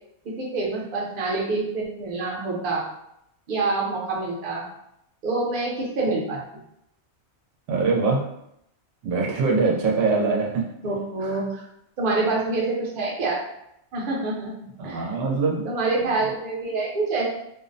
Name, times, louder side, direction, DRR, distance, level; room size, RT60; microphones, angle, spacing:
voice 1, 0.4-2.8 3.5-4.6 5.2-6.4 10.8-11.6 12.0-13.4 13.9-14.5 14.8-15.0 15.6-17.3, right 3 dB, 55° right, -3 dB, 0.7 m, -26 dB
voice 2, 7.7-8.2 9.0-10.6 11.2-11.4 14.8-15.6 16.0-16.1, right 4 dB, 85° right, -2 dB, 0.9 m, -23 dB
2.6 x 2.0 x 2.5 m, 0.77 s
omnidirectional pair, 1.2 m